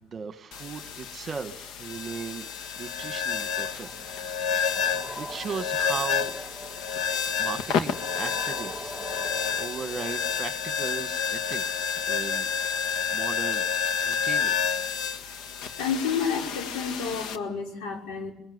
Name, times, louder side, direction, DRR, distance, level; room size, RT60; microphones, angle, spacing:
voice 1, 0.0-2.4 2.8-3.9 4.5-6.4 7.4-12.8 13.1-13.6 14.0-14.5, right 6 dB, 30° right, 10 dB, 1.6 m, -37 dB
sound 1, 0.5-17.4, left 7 dB, 65° left, 1.8 m, -30 dB
sound 2, 3.0-10.4, equal, 5° left, 3.1 m, -43 dB
voice 2, 15.8-18.3, left 6 dB, 85° left, 2 dB, 5.8 m, -30 dB
22.5 x 22.0 x 9.7 m, 0.78 s
cardioid pair, 140°, 0 cm